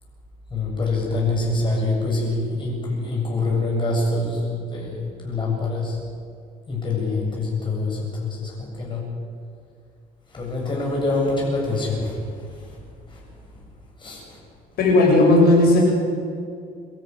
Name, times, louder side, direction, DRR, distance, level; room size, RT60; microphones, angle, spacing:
voice 1, 0.5-6.0 6.7-9.1 10.3-12.8 13.1-13.3 14.0-14.4, left 2 dB, 30° left, -3 dB, 7.9 m, -25 dB
voice 2, 14.8-15.8, left 2 dB, 70° left, -2 dB, 7.5 m, -15 dB
23.5 x 13.0 x 9.8 m, 2.3 s
cardioid pair, 110°, 17 cm